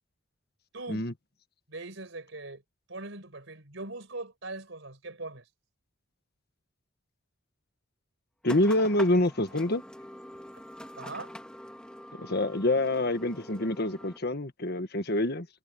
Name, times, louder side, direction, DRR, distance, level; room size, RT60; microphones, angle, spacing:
voice 1, 0.7-1.1 1.7-2.6 2.9-5.5 11.0-11.3, right 2 dB, 65° right, 4.8 m, -41 dB
voice 2, 8.4-9.8 12.2-15.5, left 1 dB, 50° left, 1.6 m, -26 dB
sound 1, 8.4-14.2, equal, 5° left, 2.4 m, -45 dB
head